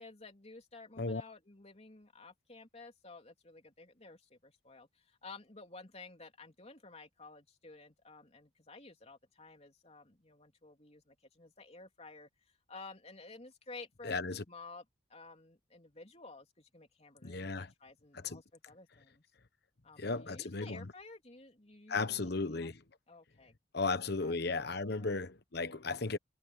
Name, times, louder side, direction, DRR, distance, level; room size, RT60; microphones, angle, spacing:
voice 1, 0.0-14.2 14.5-14.8 15.1-19.2 19.8-22.7 23.1-23.9 24.2-24.4 24.9-25.2, left 3 dB, 35° left, 3.4 m, -53 dB
voice 2, 14.0-14.4 17.2-17.7 18.1-18.4 20.0-20.9 21.9-22.8 23.7-26.2, left 3 dB, 55° left, 1.2 m, -35 dB
head